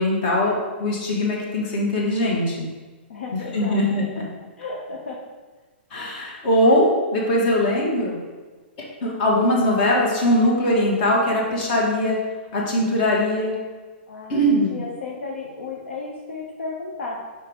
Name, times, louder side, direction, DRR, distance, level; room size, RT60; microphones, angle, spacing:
voice 1, 0.0-2.7 3.3-4.2 5.9-8.2 9.0-12.2 12.5-13.6 14.3-14.8, left 1 dB, 55° left, -3 dB, 1.9 m, -21 dB
voice 2, 3.1-4.1 4.6-5.2 14.1-17.2, left 3 dB, 85° left, -2 dB, 0.9 m, -34 dB
5.5 x 5.1 x 3.6 m, 1.3 s
hypercardioid pair, 130°, 6 cm